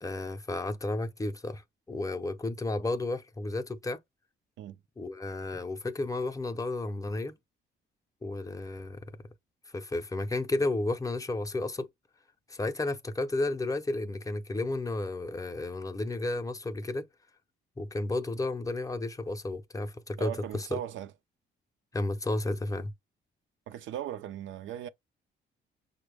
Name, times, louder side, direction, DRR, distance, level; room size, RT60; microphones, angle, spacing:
voice 1, 0.0-4.0 5.0-7.4 8.2-9.1 9.7-11.9 12.5-17.1 17.8-20.8 21.9-22.9, left 2 dB, 15° left, 0.5 m, -32 dB
voice 2, 20.2-21.1 23.7-24.9, right 11 dB, 75° right, 0.5 m, -38 dB
5.9 x 2.1 x 3.3 m
cardioid pair, 90°, 20 cm